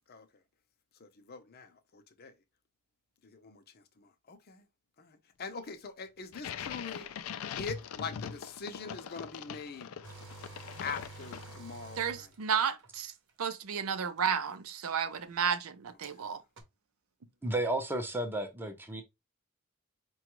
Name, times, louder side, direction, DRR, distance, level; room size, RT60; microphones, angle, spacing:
voice 1, 1.0-2.3 3.2-4.7 5.0-7.1 7.6-9.9 10.8-12.3, left 5 dB, 50° left, 0.6 m, -43 dB
sound 1, 6.3-11.8, left 7 dB, 85° left, 0.4 m, -42 dB
sound 2, 10.0-12.9 14.2-14.3 16.0-16.1 16.6-16.7, right 3 dB, 60° right, 0.9 m, -49 dB
voice 2, 12.0-13.1 13.4-16.4, right 7 dB, 80° right, 0.5 m, -32 dB
voice 3, 17.4-19.0, right 1 dB, 10° right, 0.6 m, -32 dB
4.9 x 2.3 x 3.0 m
head